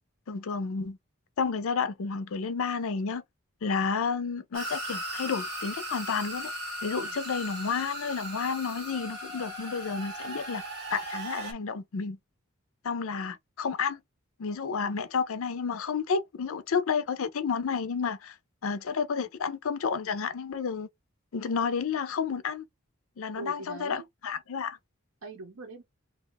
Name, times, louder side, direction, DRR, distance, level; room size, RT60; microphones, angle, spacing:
voice 1, 0.3-1.0 1.4-3.2 3.6-6.5 6.8-10.6 10.9-12.2 12.8-14.0 14.4-18.3 18.6-20.9 21.3-22.7 23.2-24.8, left 5 dB, 70° left, 0.5 m, -31 dB
sound 1, 4.5-11.5, equal, 50° right, 1.6 m, -37 dB
voice 2, 23.4-24.0 25.2-25.8, right 3 dB, 80° right, 0.9 m, -42 dB
2.8 x 2.3 x 3.9 m
head